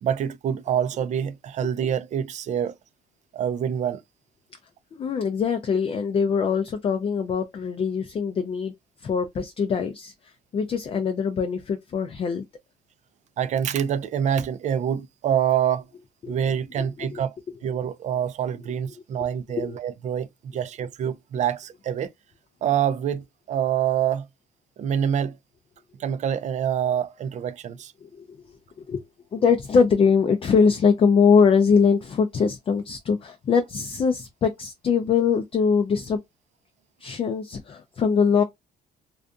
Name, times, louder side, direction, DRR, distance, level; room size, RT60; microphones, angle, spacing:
voice 1, 0.0-2.7 3.3-4.0 13.4-15.8 16.3-17.3 17.6-22.1 22.6-24.3 24.8-25.4 26.0-27.9, right 9 dB, 45° right, 0.4 m, -26 dB
voice 2, 4.9-8.7 9.0-12.4 16.2-16.3 16.8-17.2 19.5-19.8 28.0-28.5 28.9-29.0 29.3-36.2 37.0-38.4, left 6 dB, 35° left, 0.4 m, -22 dB
2.5 x 2.3 x 2.4 m
cardioid pair, 110°, 17 cm